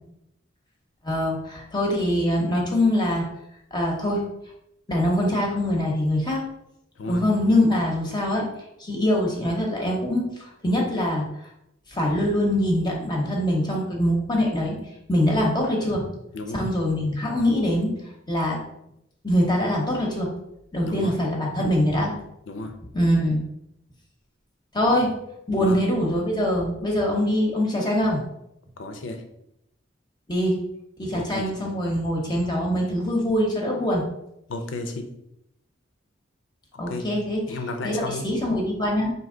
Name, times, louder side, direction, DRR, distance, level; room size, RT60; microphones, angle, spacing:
voice 1, 1.0-3.2 3.7-4.2 4.9-6.4 7.1-8.5 8.8-11.2 11.9-14.8 15.1-16.0 16.5-17.9 18.3-18.6 19.2-20.3 20.7-22.1 22.9-23.4 24.7-25.1 25.5-28.2 30.3-30.6 31.0-34.0 36.8-37.6 37.8-39.1, left 1 dB, 25° left, -2 dB, 0.8 m, -23 dB
voice 2, 16.3-16.7 20.8-21.1 22.5-22.7 24.8-25.0 25.6-25.8 28.8-29.2 31.1-31.5 34.5-35.1 36.7-37.1 37.5-38.3, left 2 dB, 80° left, 6 dB, 0.6 m, -33 dB
4.5 x 2.8 x 3.8 m, 0.81 s
head